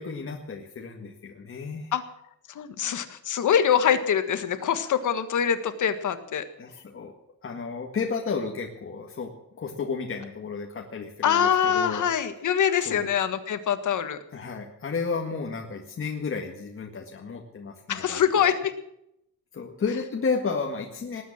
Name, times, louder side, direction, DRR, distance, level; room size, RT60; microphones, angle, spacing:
voice 1, 0.0-1.9 6.6-7.1 7.4-9.3 9.6-12.0 12.8-13.1 14.3-18.5 19.5-21.2, left 5 dB, 45° left, 1 dB, 1.8 m, -32 dB
voice 2, 2.5-6.5 11.2-14.2 17.9-18.7, left 8 dB, 85° left, 10 dB, 1.6 m, -24 dB
19.5 x 9.5 x 7.3 m, 0.79 s
wide cardioid pair, 165°, 30 cm